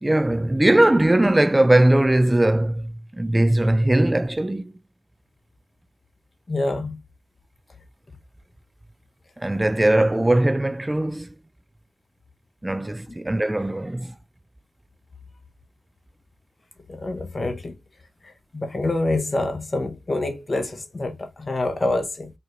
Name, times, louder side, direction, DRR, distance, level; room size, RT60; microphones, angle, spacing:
voice 1, 0.0-4.7 9.4-11.3 12.6-14.2, right 1 dB, 15° right, 0.3 m, -20 dB
voice 2, 6.5-7.0 16.9-17.7 18.5-22.3, left 2 dB, 35° left, 1.0 m, -26 dB
4.3 x 2.5 x 3.1 m
supercardioid pair, 50°, 0 cm